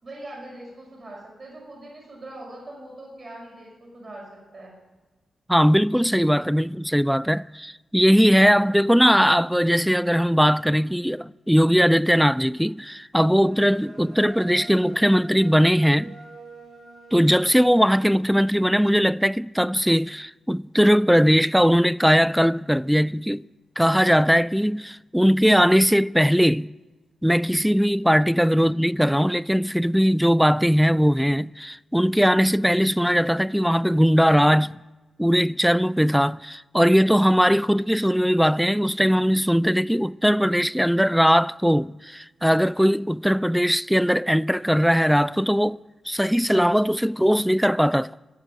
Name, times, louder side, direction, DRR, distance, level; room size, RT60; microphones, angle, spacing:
voice 1, 0.0-4.2 4.5-4.7 28.6-28.8, right 1 dB, 50° right, 5.4 m, -41 dB
voice 2, 5.5-16.2 17.1-23.4 23.8-26.7 27.2-34.8 35.2-45.8 46.1-48.1, equal, ahead, 0.4 m, -20 dB
sound 1, 13.3-18.5, right 3 dB, 75° right, 5.0 m, -46 dB
14.0 x 7.2 x 9.1 m
supercardioid pair, 40°, 0 cm